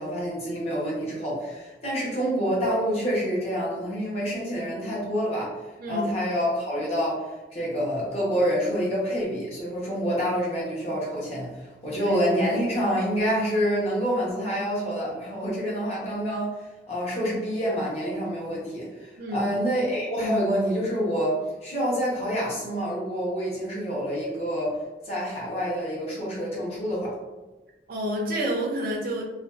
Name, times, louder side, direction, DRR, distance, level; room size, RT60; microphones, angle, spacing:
voice 1, 0.0-5.6 5.9-24.8 25.0-27.2, equal, 35° left, -6 dB, 0.7 m, -27 dB
voice 2, 19.2-19.5 27.9-29.3, equal, 55° right, -1 dB, 0.4 m, -29 dB
2.4 x 2.2 x 2.3 m, 1.1 s
head